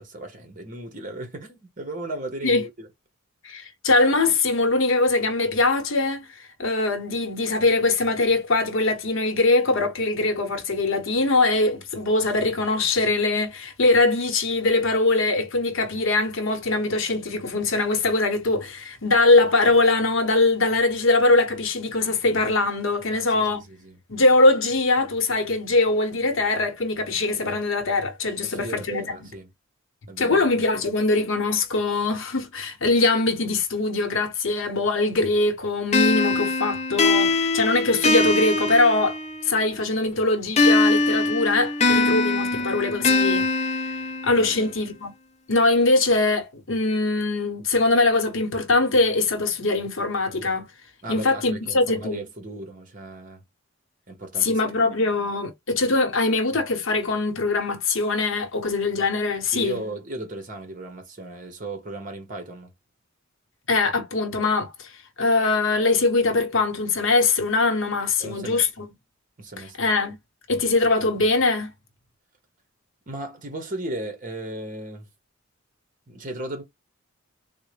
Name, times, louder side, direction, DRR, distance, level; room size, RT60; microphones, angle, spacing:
voice 1, 0.0-2.9 23.1-24.0 28.4-29.5 30.1-30.9 44.3-44.7 51.0-53.4 54.1-54.6 54.9-55.1 59.5-62.7 68.2-68.7 69.4-69.8 73.1-75.1 76.1-76.6, right 2 dB, 35° right, 1.0 m, -36 dB
voice 2, 3.4-23.6 24.1-29.2 30.2-43.8 44.2-45.1 45.5-50.7 51.1-52.2 54.4-59.8 63.7-64.9 65.2-68.9 69.6-70.1 70.5-71.7, left 3 dB, 65° left, 0.9 m, -22 dB
sound 1, 35.9-39.6 40.6-44.6, left 3 dB, 30° left, 0.5 m, -22 dB
3.6 x 2.1 x 3.1 m
head